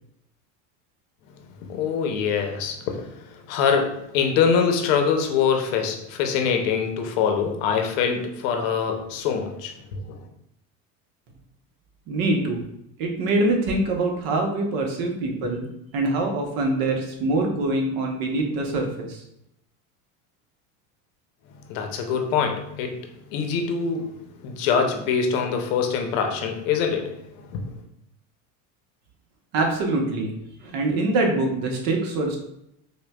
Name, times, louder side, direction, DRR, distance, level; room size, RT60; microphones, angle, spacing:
voice 1, 1.6-10.2 21.7-27.8, left 6 dB, 75° left, 0.7 m, -24 dB
voice 2, 12.1-12.6 13.0-15.7 15.9-19.2 29.5-30.3 30.6-32.4, right 2 dB, 60° right, 1.0 m, -24 dB
5.2 x 2.2 x 2.3 m
supercardioid pair, 100°, 39 cm